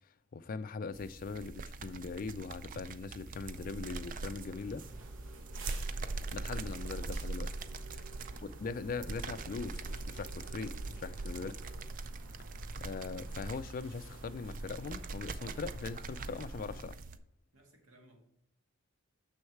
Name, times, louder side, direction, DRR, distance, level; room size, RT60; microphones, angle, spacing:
voice 1, 0.3-4.8 5.9-7.5 7.9-8.0 8.6-11.5 12.8-17.0, left 4 dB, 40° left, 0.3 m, -41 dB
sound 1, 0.9-17.2, right 3 dB, 40° right, 0.4 m, -42 dB
sound 2, 3.4-11.8, right 2 dB, 10° right, 1.1 m, -59 dB
sound 3, 4.2-16.8, right 2 dB, 60° right, 0.7 m, -51 dB
voice 2, 8.0-8.5 11.3-11.6 17.5-18.2, right 1 dB, 85° right, 1.7 m, -60 dB
6.5 x 6.4 x 4.6 m
head